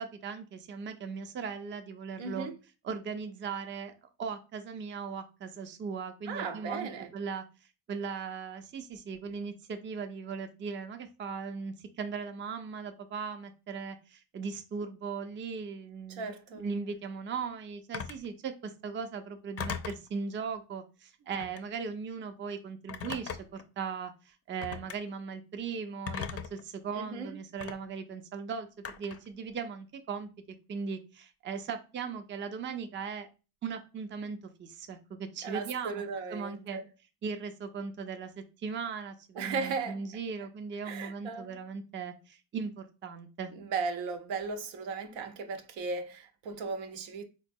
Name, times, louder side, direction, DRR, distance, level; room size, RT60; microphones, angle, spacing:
voice 1, 0.0-2.5 2.8-3.9 4.2-7.4 7.9-30.3 30.7-33.3 33.6-36.0 36.3-36.8 37.2-38.3 38.6-43.5, right 5 dB, 25° right, 0.4 m, -38 dB
voice 2, 2.2-2.5 6.3-7.1 16.1-16.7 26.9-27.4 35.4-36.8 39.4-40.0 40.8-41.5 43.5-47.2, right 4 dB, 85° right, 0.6 m, -36 dB
Telephone, 17.9-18.3 19.6-20.1 21.3-21.7 22.9-23.6 24.6-25.0 26.1-26.6 27.6-27.7 28.8-29.3, left 7 dB, 35° left, 0.4 m, -38 dB
3.8 x 2.2 x 2.6 m
cardioid pair, 90°, 45 cm